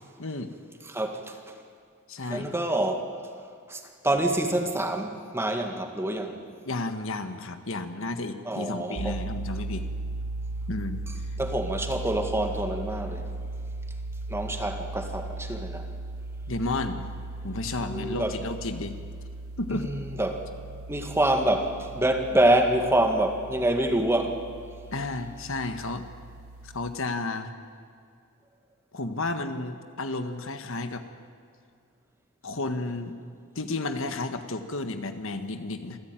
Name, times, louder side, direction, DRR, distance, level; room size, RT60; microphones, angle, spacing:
voice 1, 0.2-0.5 2.1-2.5 6.7-9.9 10.7-11.0 16.5-17.1 17.4-19.0 19.6-19.9 24.9-26.1 26.6-27.5 28.9-31.0 32.4-33.2 33.5-36.0, left 2 dB, 65° left, 8 dB, 1.5 m, -32 dB
voice 2, 0.9-1.4 2.3-3.1 3.7-6.4 8.5-9.2 11.4-13.3 14.3-15.9 17.9-18.3 19.7-20.5 20.9-24.4, right 1 dB, 10° right, 4 dB, 1.9 m, -26 dB
sound 1, 9.0-26.9, right 2 dB, 70° right, 0.8 m, -37 dB
26.0 x 15.0 x 9.1 m, 2.3 s
head